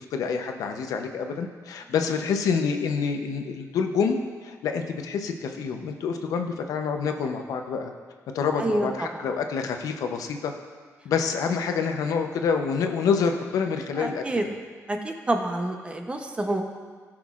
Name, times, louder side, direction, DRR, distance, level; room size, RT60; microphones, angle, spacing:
voice 1, 0.0-7.9 8.3-10.5 11.0-14.5, left 6 dB, 90° left, 5 dB, 0.7 m, -27 dB
voice 2, 8.6-9.3 14.0-14.5 14.9-16.6, right 1 dB, 20° right, 4 dB, 0.7 m, -28 dB
15.0 x 6.1 x 2.4 m, 1.5 s
cardioid pair, 135°, 6 cm